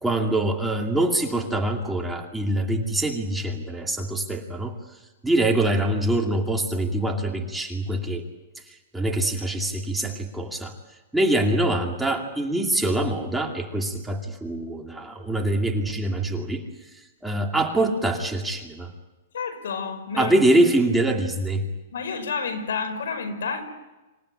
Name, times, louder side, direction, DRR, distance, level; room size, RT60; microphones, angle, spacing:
voice 1, 0.0-4.8 5.2-8.2 8.9-10.7 11.1-16.6 17.2-18.9 20.2-21.6, right 1 dB, 5° right, 1 dB, 2.5 m, -24 dB
voice 2, 19.3-20.4 21.9-23.6, left 5 dB, 85° left, 8 dB, 5.2 m, -29 dB
26.5 x 16.0 x 9.9 m, 1.1 s
hypercardioid pair, 145°, 0 cm